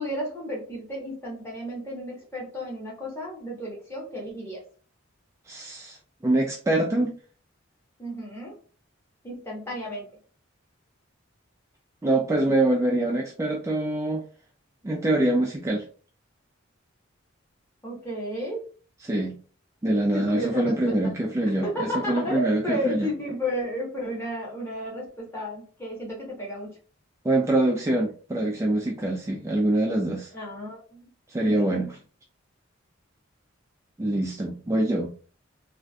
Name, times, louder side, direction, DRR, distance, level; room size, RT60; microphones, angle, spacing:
voice 1, 0.0-4.6 8.0-8.6 9.2-10.1 17.8-18.6 20.1-21.1 21.6-26.8 30.3-31.1 31.4-31.9, equal, 15° left, -4 dB, 1.3 m, -33 dB
voice 2, 5.5-6.0 6.2-7.1 12.0-14.2 14.8-15.8 19.0-19.4 19.8-23.1 27.2-30.3 31.3-32.0 34.0-35.1, right 1 dB, 15° right, -1 dB, 0.4 m, -24 dB
3.4 x 2.5 x 2.3 m, 0.39 s
head